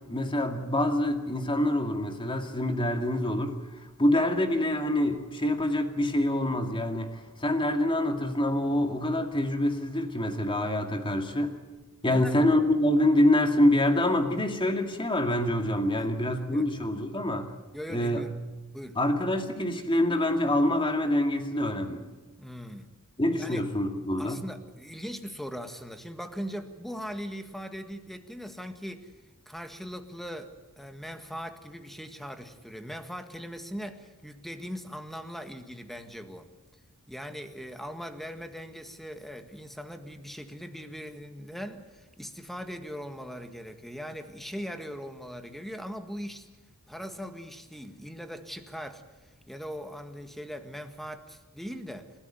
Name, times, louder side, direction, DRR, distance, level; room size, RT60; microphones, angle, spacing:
voice 1, 0.0-3.6 4.0-11.6 12.0-17.5 17.9-18.2 19.0-22.1 23.2-24.4, left 1 dB, 25° left, 2.2 m, -26 dB
voice 2, 12.0-12.4 16.0-16.1 16.3-16.7 17.7-18.3 18.7-19.0 22.4-22.9 23.3-23.6 24.2-29.1 29.4-36.5 37.1-46.5 46.9-49.0 49.5-52.1, equal, ahead, 1.6 m, -40 dB
29.5 x 13.5 x 9.3 m
head